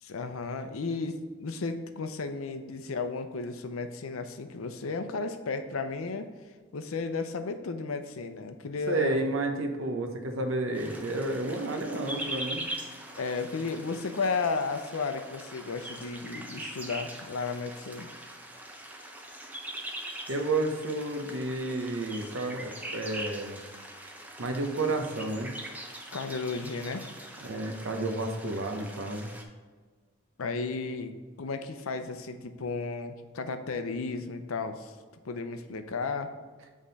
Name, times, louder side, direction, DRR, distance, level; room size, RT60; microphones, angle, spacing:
voice 1, 0.0-6.3 6.7-9.3 13.2-18.1 26.1-27.1 30.4-34.9 35.2-36.3, left 4 dB, 90° left, 8 dB, 0.6 m, -34 dB
voice 2, 8.9-12.6 20.3-23.6 24.4-25.5 27.4-29.3, right 2 dB, 75° right, 5 dB, 0.8 m, -31 dB
sound 1, 10.7-29.4, right 1 dB, 10° right, 0.5 m, -42 dB
7.5 x 3.6 x 4.0 m, 1.4 s
head